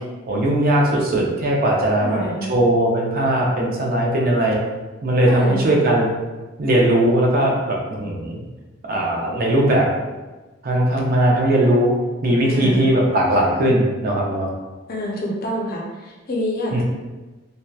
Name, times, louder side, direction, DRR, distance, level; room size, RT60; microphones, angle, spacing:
voice 1, 0.3-4.6 5.0-6.1 6.6-8.4 8.9-9.9 10.6-11.9 12.2-14.5 16.7-16.8, right 1 dB, 50° right, -2 dB, 0.5 m, -19 dB
voice 2, 2.0-2.5 5.3-5.8 12.4-12.9 14.9-16.8, equal, 50° left, -2 dB, 0.5 m, -27 dB
2.7 x 2.1 x 2.2 m, 1.2 s
head